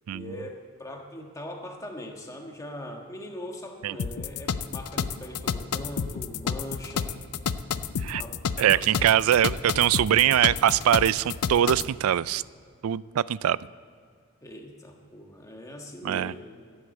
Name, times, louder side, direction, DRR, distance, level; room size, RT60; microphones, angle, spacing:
voice 1, 0.1-7.2 8.1-8.4 8.7-8.9 14.4-16.4, left 1 dB, 15° left, 2 dB, 1.5 m, -41 dB
sound 1, 4.0-11.9, left 6 dB, 85° left, 0.5 m, -30 dB
voice 2, 8.6-12.4 12.8-13.6 16.0-16.3, right 10 dB, 75° right, 20 dB, 0.3 m, -22 dB
15.5 x 8.1 x 8.0 m, 2.3 s
head